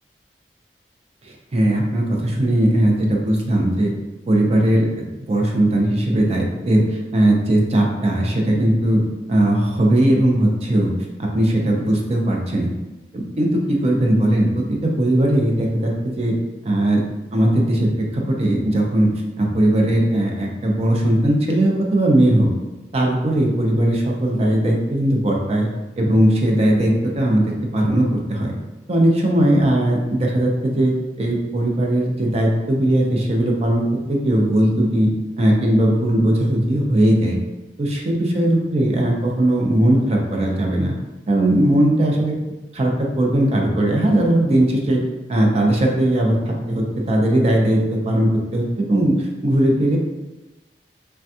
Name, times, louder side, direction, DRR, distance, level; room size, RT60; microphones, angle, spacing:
voice 1, 1.2-3.9 4.3-9.0 9.3-10.9 11.2-12.7 13.1-16.3 16.6-17.0 17.3-19.1 19.4-22.5 22.9-25.7 26.0-28.5 28.9-30.9 31.2-35.1 35.4-37.4 37.8-40.9 41.3-42.3 42.7-45.0 45.3-50.0, right 1 dB, 35° right, 0 dB, 0.5 m, -18 dB
3.3 x 2.2 x 2.7 m, 1.1 s
head